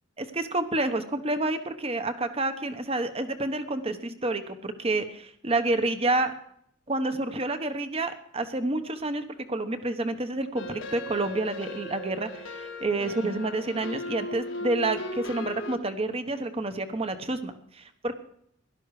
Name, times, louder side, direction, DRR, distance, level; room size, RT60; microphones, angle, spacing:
voice 1, 0.2-6.3 6.9-18.1, right 2 dB, 30° right, 9 dB, 1.1 m, -29 dB
sound 1, 10.6-15.8, left 1 dB, 85° left, 1.6 m, -37 dB
17.0 x 12.0 x 4.9 m, 0.69 s
head